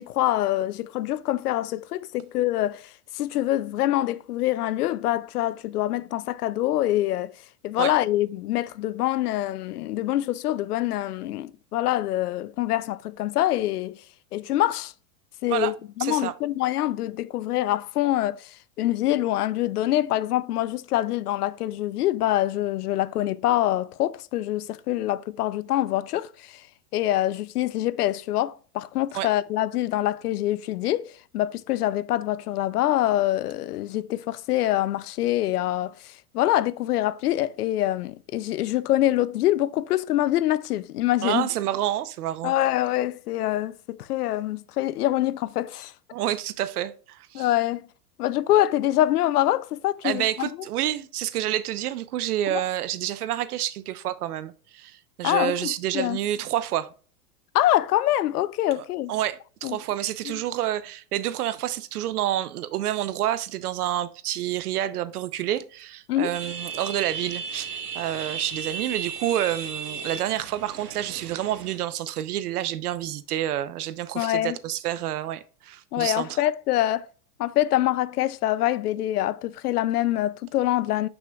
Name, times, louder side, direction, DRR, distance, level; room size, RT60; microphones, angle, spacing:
voice 1, 0.0-7.3 7.6-14.0 14.3-14.9 15.4-26.6 26.9-41.5 42.4-45.9 47.3-47.9 48.2-50.5 52.5-52.6 55.2-56.2 57.5-59.1 59.6-59.8 60.3-60.4 66.1-66.4 74.2-74.6 75.9-77.1 77.4-81.1, left 14 dB, 80° left, 0.6 m, -25 dB
voice 2, 16.0-16.3 29.1-29.3 41.2-42.5 46.1-47.5 50.0-56.9 59.1-76.4, right 12 dB, 75° right, 0.9 m, -28 dB
sound 1, 66.3-71.8, right 6 dB, 90° right, 1.5 m, -35 dB
6.7 x 6.0 x 2.3 m
hypercardioid pair, 120°, 46 cm